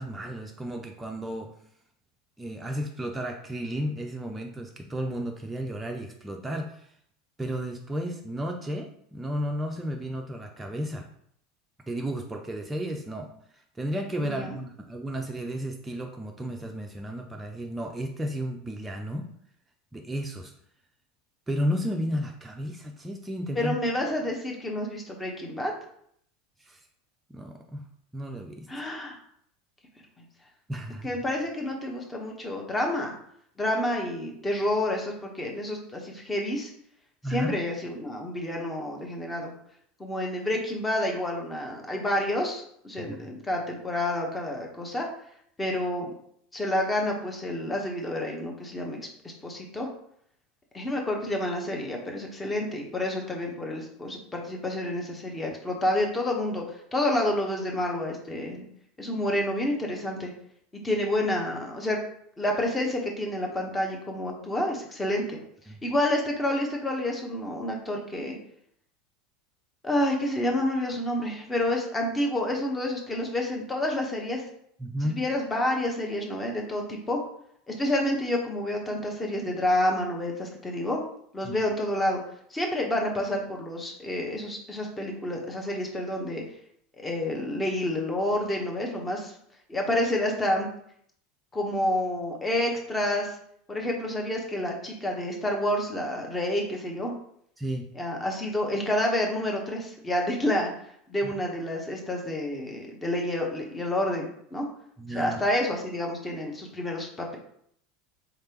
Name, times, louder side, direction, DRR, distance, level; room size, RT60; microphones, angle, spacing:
voice 1, 0.0-1.5 2.4-6.9 7.4-11.1 11.9-19.3 19.9-20.5 21.5-23.7 26.6-26.8 27.3-27.8 28.1-28.9 30.7-31.1 37.2-37.6 43.0-43.3 65.7-65.8 74.8-75.2 81.4-81.5 97.6-97.9 101.2-101.4 105.0-105.4, equal, 10° right, 1 dB, 0.5 m, -33 dB
voice 2, 23.5-25.7 28.7-29.2 31.0-33.1 33.6-36.7 37.3-39.5 40.0-45.1 45.6-46.1 46.5-49.0 49.2-49.9 50.7-58.6 59.0-60.3 60.8-62.0 62.4-65.4 65.8-68.4 69.8-74.4 75.0-77.2 77.7-81.0 81.3-82.2 82.5-86.4 87.0-89.3 89.7-90.7 91.5-93.4 93.7-97.1 97.9-100.7 101.1-104.7 105.1-107.4, left 1 dB, 15° left, 0 dB, 1.0 m, -29 dB
3.8 x 3.3 x 2.9 m, 0.68 s
figure-of-eight pair, 80°, 0 cm